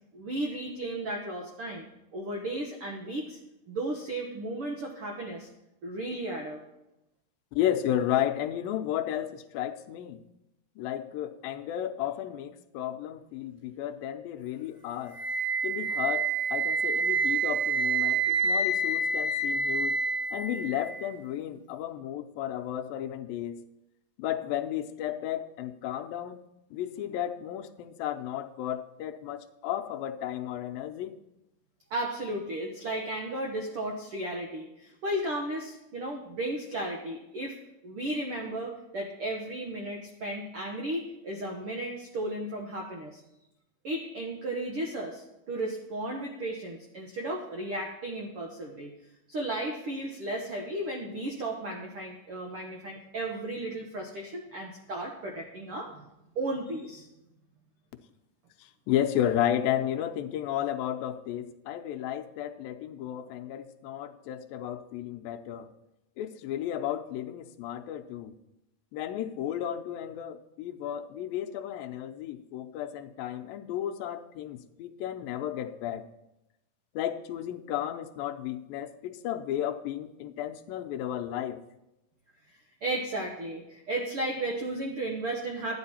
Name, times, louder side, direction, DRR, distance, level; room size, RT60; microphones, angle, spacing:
voice 1, 0.1-1.8 2.1-3.4 3.7-5.5 5.8-6.6 31.9-37.6 37.8-43.2 43.8-48.9 49.3-56.0 56.3-57.1 82.8-85.8, right 1 dB, 75° right, 1 dB, 1.2 m, -34 dB
voice 2, 7.5-10.2 10.8-15.2 15.6-19.9 20.3-23.6 24.2-26.4 26.7-31.2 58.6-65.7 66.2-68.3 68.9-76.1 77.0-81.6, left 11 dB, 85° left, 6 dB, 2.4 m, -33 dB
Wind instrument woodwind instrument, 15.1-21.1, right 3 dB, 15° right, 3.2 m, -28 dB
12.5 x 9.6 x 4.2 m, 0.90 s
omnidirectional pair, 4.2 m